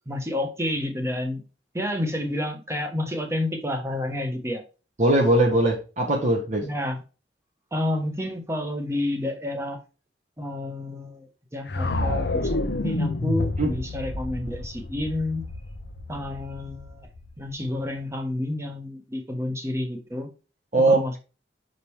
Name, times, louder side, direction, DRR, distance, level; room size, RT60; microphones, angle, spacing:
voice 1, 0.1-1.4 1.7-4.6 6.6-7.0 7.7-9.8 10.4-11.3 11.5-15.4 16.1-17.1 17.4-20.3 20.8-21.2, left 1 dB, 15° right, 5 dB, 1.2 m, -30 dB
voice 2, 5.0-6.7 13.6-13.7 20.7-21.2, right 1 dB, 40° right, 0 dB, 1.1 m, -20 dB
sound 1, 11.7-17.8, left 2 dB, 65° left, 0.7 m, -29 dB
5.8 x 5.2 x 3.2 m, 0.32 s
head